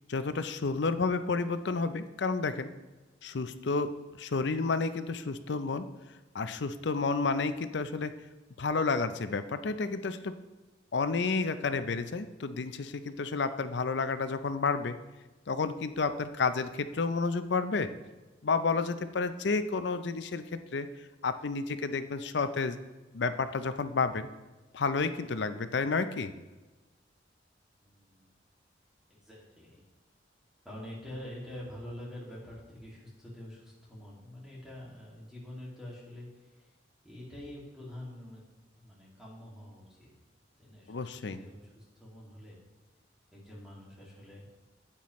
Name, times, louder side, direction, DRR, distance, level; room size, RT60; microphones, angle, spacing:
voice 1, 0.1-2.7 3.2-3.9 4.2-5.9 6.3-8.1 8.6-10.4 10.9-14.9 15.5-17.9 18.4-20.9 21.2-22.8 23.1-24.3 24.7-26.3 40.9-41.4, left 4 dB, 65° left, 11 dB, 0.5 m, -30 dB
voice 2, 27.8-28.3 29.1-29.8 30.6-36.7 37.0-38.4 38.8-40.1 40.6-42.6 43.3-44.5, left 1 dB, 5° right, -6 dB, 2.3 m, -46 dB
9.8 x 8.7 x 3.1 m, 1.2 s
head